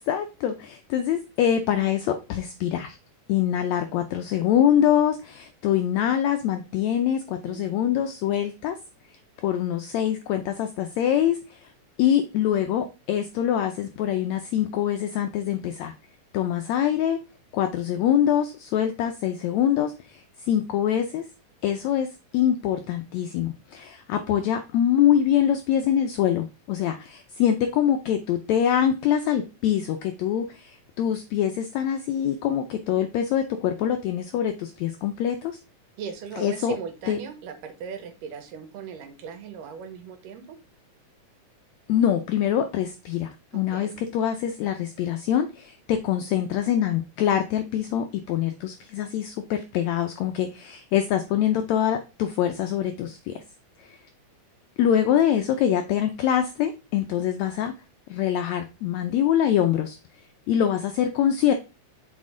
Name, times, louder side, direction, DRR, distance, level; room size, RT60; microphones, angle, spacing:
voice 1, 0.1-3.0 3.3-8.8 9.4-11.7 12.0-15.9 16.3-17.2 17.5-21.2 21.6-35.5 36.4-36.7 37.1-37.2 41.9-53.4 53.8-54.0 54.8-57.7 58.1-60.0 60.5-61.5, left 10 dB, 85° left, 7 dB, 1.6 m, -24 dB
voice 2, 7.5-7.9 36.0-40.6 43.5-44.0, right 6 dB, 80° right, 7 dB, 2.6 m, -37 dB
6.2 x 4.5 x 3.7 m, 0.28 s
omnidirectional pair, 3.8 m